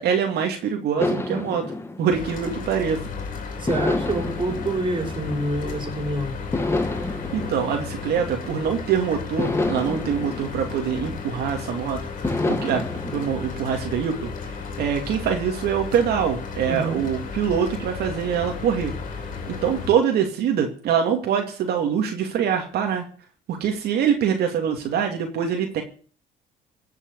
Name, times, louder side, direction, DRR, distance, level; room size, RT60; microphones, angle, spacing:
voice 1, 0.0-1.6 2.0-3.0 7.3-12.8 13.1-18.9 19.5-23.0 23.5-25.8, right 8 dB, 70° right, 2 dB, 2.6 m, -24 dB
sound 1, 1.0-3.1 3.7-5.9 6.5-8.8 9.4-11.6 12.2-13.3, left 2 dB, 15° left, 2.3 m, -29 dB
Mechanical fan, 2.1-19.9, left 5 dB, 50° left, 4.1 m, -34 dB
voice 2, 3.6-6.3 16.7-17.1, right 1 dB, 30° right, 4 dB, 5.1 m, -27 dB
17.0 x 6.9 x 8.2 m, 0.42 s
cardioid pair, 110°, 17 cm